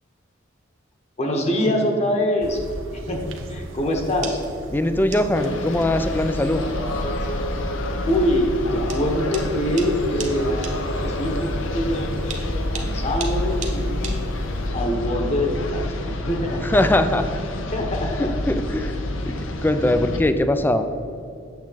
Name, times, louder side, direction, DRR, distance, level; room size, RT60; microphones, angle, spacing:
voice 1, 1.2-2.6 2.9-4.4 8.0-10.5 11.0-12.4 12.7-14.3 14.7-16.6 17.7-18.3, left 1 dB, 35° left, 2 dB, 1.2 m, -24 dB
sound 1, 2.4-14.7, right 1 dB, 80° right, 0.9 m, -38 dB
sound 2, 4.0-14.7, right 5 dB, 40° right, 1.1 m, -39 dB
voice 2, 4.7-6.6 16.6-17.3 18.2-19.0 19.3-19.4 19.6-20.9, left 1 dB, 10° left, 9 dB, 0.4 m, -21 dB
sound 3, 5.3-20.2, left 1 dB, 80° left, 0.8 m, -28 dB
8.6 x 7.2 x 4.0 m, 2.6 s
head